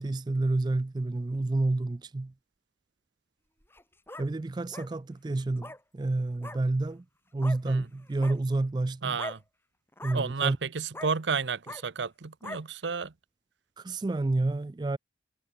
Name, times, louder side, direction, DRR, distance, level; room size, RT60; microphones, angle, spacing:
voice 1, 0.0-2.3 4.2-7.0 7.3-9.2 10.0-10.6 13.8-15.0, right 2 dB, 25° right, 0.3 m, -29 dB
sound 1, 3.6-4.3 4.7-4.9 5.6-5.8 6.4-6.6 7.4-7.6 8.1-8.4 9.1-9.4 9.9-10.2 10.9-11.1 11.6-11.8 12.4-12.6, left 2 dB, 15° left, 4.6 m, -41 dB
voice 2, 9.0-9.4 10.1-13.1, right 5 dB, 85° right, 0.8 m, -31 dB
head